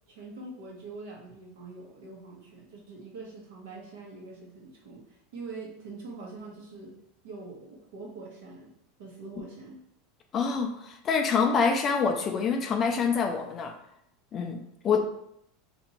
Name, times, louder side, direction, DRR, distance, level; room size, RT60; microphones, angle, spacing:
voice 1, 0.1-6.9 7.2-8.7 9.0-9.8, right 3 dB, 80° right, -1 dB, 1.0 m, -44 dB
voice 2, 10.3-13.8 14.3-15.0, left 5 dB, 20° left, 4 dB, 0.3 m, -26 dB
2.8 x 2.6 x 4.1 m, 0.76 s
supercardioid pair, 175°, 0 cm